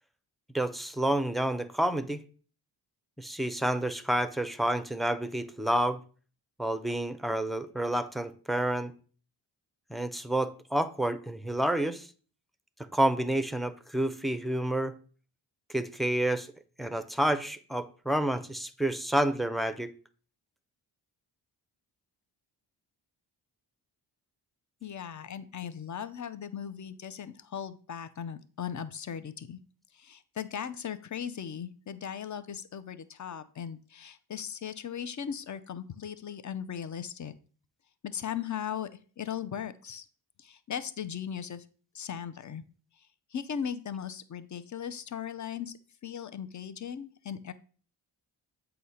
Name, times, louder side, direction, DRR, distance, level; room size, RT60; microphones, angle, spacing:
voice 1, 0.5-2.2 3.2-6.0 6.6-8.9 9.9-12.1 12.9-14.9 15.7-16.5 16.8-19.9, right 1 dB, ahead, 0.5 m, -29 dB
voice 2, 24.8-29.6 29.9-37.3 38.0-38.9 39.2-40.1 40.4-41.6 41.9-42.6 43.3-45.7 46.0-47.5, left 8 dB, 45° left, 0.6 m, -38 dB
7.9 x 2.8 x 5.6 m
cardioid pair, 90°, 43 cm